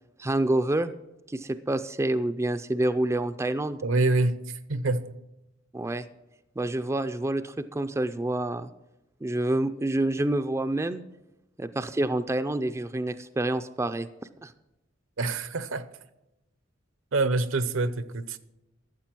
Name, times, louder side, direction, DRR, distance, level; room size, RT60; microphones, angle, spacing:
voice 1, 0.2-0.9 1.3-3.8 5.7-6.1 6.6-8.7 9.2-11.0 11.6-14.1 14.4-14.5, right 1 dB, 15° right, 0.4 m, -27 dB
voice 2, 3.8-5.2 15.2-15.9 17.1-18.4, right 2 dB, 70° right, 0.7 m, -26 dB
13.5 x 7.5 x 6.0 m
head